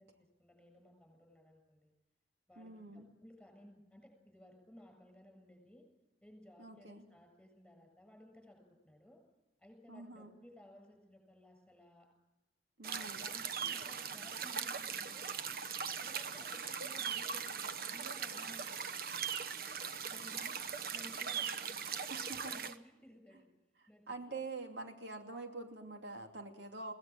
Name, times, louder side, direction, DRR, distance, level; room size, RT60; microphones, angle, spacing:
voice 1, 0.0-1.9 2.5-5.8 6.2-9.2 9.6-12.1 12.8-15.4 16.0-19.2 20.1-20.6 20.9-23.5 23.9-24.2, left 1 dB, 5° left, 2 dB, 7.3 m, -58 dB
voice 2, 2.6-3.1 6.6-7.0 9.9-10.3 12.8-13.3 22.1-22.5 23.8-26.9, right 3 dB, 90° right, 4 dB, 2.7 m, -46 dB
sound 1, 12.8-22.7, right 7 dB, 55° right, 1.0 m, -40 dB
21.5 x 18.5 x 7.6 m, 1.0 s
head